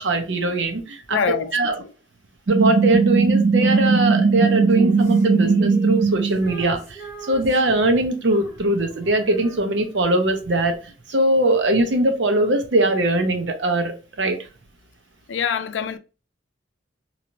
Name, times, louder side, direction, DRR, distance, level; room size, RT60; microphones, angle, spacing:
voice 1, 0.0-1.2 1.5-1.8 2.5-14.4, right 2 dB, 70° right, 0.7 m, -21 dB
voice 2, 1.1-1.9 15.3-16.0, left 7 dB, 80° left, 0.4 m, -25 dB
sound 1, 2.5-6.4, right 4 dB, 45° right, 0.4 m, -18 dB
Female singing, 3.6-10.1, right 4 dB, 15° right, 0.9 m, -40 dB
3.0 x 2.6 x 2.9 m
head